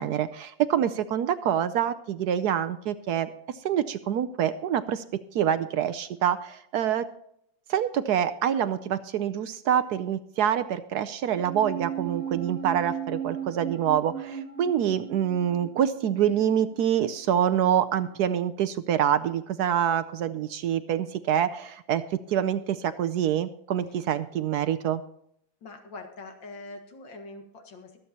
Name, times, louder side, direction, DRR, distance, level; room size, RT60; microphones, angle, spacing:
voice 1, 0.0-5.0 5.3-7.1 7.7-22.0 22.3-25.0, right 9 dB, 70° right, 12 dB, 1.0 m, -26 dB
sound 1, 11.3-17.9 18.2-18.3, right 8 dB, 35° right, 1.4 m, -37 dB
voice 2, 25.6-28.0, left 2 dB, 80° left, 4 dB, 2.4 m, -43 dB
23.5 x 8.0 x 2.9 m, 0.71 s
omnidirectional pair, 2.0 m